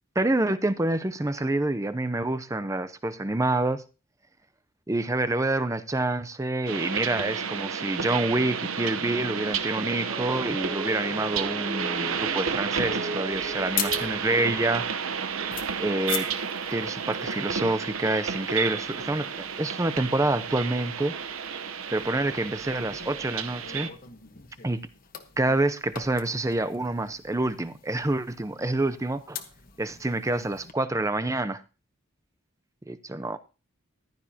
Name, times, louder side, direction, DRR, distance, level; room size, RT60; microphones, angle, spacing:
voice 1, 0.2-3.8 4.9-14.8 15.8-16.3 16.7-21.2 21.9-23.9 24.6-24.8 25.4-29.4 29.8-31.6 32.9-33.4, right 2 dB, 15° right, 0.5 m, -27 dB
sound 1, 6.7-23.9, right 6 dB, 80° right, 0.9 m, -32 dB
at peace with the ambience, 9.8-14.9, equal, 40° right, 3.6 m, -38 dB
sound 2, 13.3-30.7, left 9 dB, 40° left, 1.2 m, -42 dB
14.5 x 12.0 x 2.8 m
head